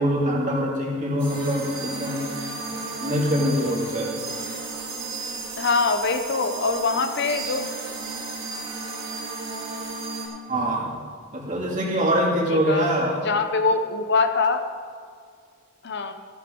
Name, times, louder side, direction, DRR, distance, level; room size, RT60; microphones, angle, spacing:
voice 1, 0.0-2.2 2.7-4.1 10.5-11.0 11.3-13.2, equal, 40° right, -2 dB, 2.4 m, -24 dB
sound 1, 1.2-10.3, right 3 dB, 55° right, 2.6 m, -33 dB
voice 2, 5.6-7.8 12.5-12.9 13.2-14.6 15.8-16.1, left 4 dB, 55° left, 8 dB, 0.7 m, -23 dB
14.0 x 11.0 x 3.8 m, 2.1 s
head